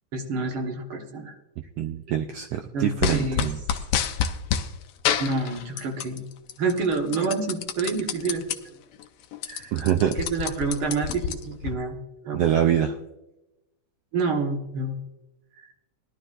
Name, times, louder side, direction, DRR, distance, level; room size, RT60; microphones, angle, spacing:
voice 1, 0.1-1.3 2.7-3.4 5.2-6.3 6.6-8.4 9.5-9.7 10.0-12.4 14.1-15.0 15.6-15.7, right 3 dB, 50° right, 2 dB, 1.8 m, -28 dB
voice 2, 1.8-3.6 9.7-10.1 12.3-13.0, right 10 dB, 85° right, 6 dB, 1.4 m, -24 dB
sound 1, 3.0-4.7 5.0-6.2 6.5-8.6 9.0-9.1 9.3-11.7, left 8 dB, 85° left, 1.3 m, -27 dB
19.5 x 11.5 x 2.5 m, 0.97 s
omnidirectional pair, 3.5 m